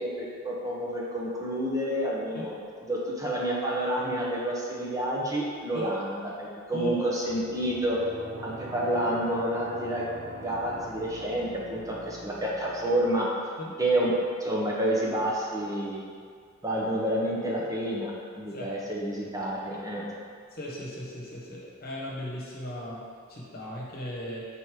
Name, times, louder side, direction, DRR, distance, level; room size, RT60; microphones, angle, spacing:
voice 1, 0.0-2.5 2.8-8.0 8.4-10.1 10.4-13.3 13.8-14.1 14.4-16.0 16.6-20.1, right 1 dB, 15° right, -5 dB, 0.8 m, -29 dB
sound 1, 7.2-13.2, equal, 55° right, 0.7 m, -42 dB
voice 2, 20.6-23.0 23.3-24.5, equal, 50° left, -5 dB, 1.3 m, -37 dB
5.5 x 4.2 x 4.7 m, 2.1 s
head